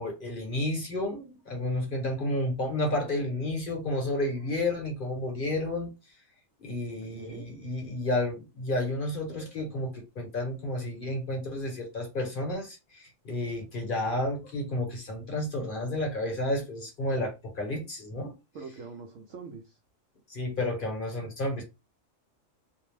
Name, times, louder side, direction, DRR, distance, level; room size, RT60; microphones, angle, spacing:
voice 1, 0.0-5.9 6.6-18.3 20.3-21.6, left 1 dB, 45° left, 0.8 m, -31 dB
voice 2, 6.9-7.5 18.5-19.8, right 4 dB, 70° right, 0.8 m, -44 dB
2.7 x 2.0 x 3.1 m
omnidirectional pair, 1.4 m